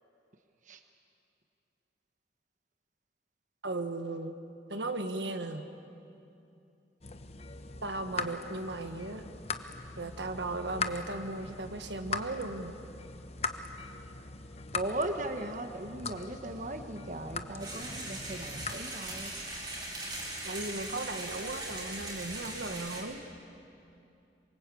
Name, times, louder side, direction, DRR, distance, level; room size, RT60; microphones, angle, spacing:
voice 1, 3.6-4.3 4.7-5.6 7.8-9.2 10.0-12.7 20.4-23.2, right 2 dB, 75° right, 7 dB, 1.5 m, -36 dB
sound 1, 7.0-18.7, left 4 dB, 35° left, 1.0 m, -40 dB
voice 2, 14.7-19.3, right 1 dB, 45° right, 6 dB, 1.4 m, -37 dB
sound 2, 17.6-23.0, right 2 dB, 25° right, 4.6 m, -40 dB
27.0 x 23.5 x 8.5 m, 2.7 s
head